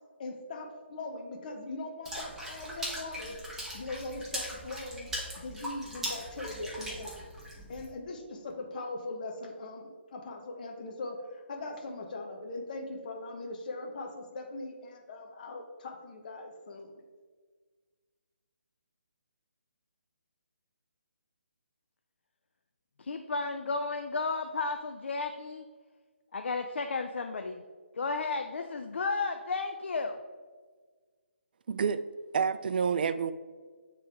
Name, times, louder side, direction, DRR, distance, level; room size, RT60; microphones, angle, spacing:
voice 1, 0.2-3.4 3.7-5.1 5.3-7.3 7.7-16.9, left 2 dB, 45° left, 2 dB, 0.9 m, -40 dB
Water / Splash splatter, 2.1-7.9, equal, 5° right, 0.9 m, -40 dB
voice 2, 23.0-25.7 26.3-27.6 28.0-30.2, left 4 dB, 70° left, 5 dB, 0.4 m, -33 dB
voice 3, 31.7-32.0 32.3-33.3, right 6 dB, 50° right, 12 dB, 0.3 m, -28 dB
8.6 x 3.3 x 3.4 m, 1.5 s
figure-of-eight pair, 150°, 7 cm